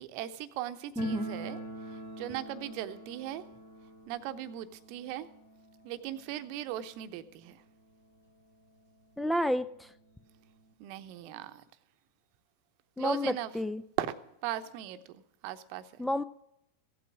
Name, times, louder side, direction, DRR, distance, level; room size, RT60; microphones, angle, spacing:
voice 1, 0.0-3.4 4.1-5.3 5.8-7.6 10.8-11.6 13.0-13.5 14.0-14.1 14.4-16.1, right 12 dB, 45° right, 11 dB, 0.8 m, -38 dB
sound 1, 1.0-7.7 7.9-8.0 8.3-8.4 9.1-9.2 9.5-10.7, right 1 dB, 85° left, 3.0 m, -45 dB
voice 2, 9.2-9.9 13.0-13.8 16.0-16.2, left 1 dB, 5° left, 13 dB, 0.4 m, -30 dB
16.0 x 8.5 x 6.1 m, 0.83 s
figure-of-eight pair, 90°, 0 cm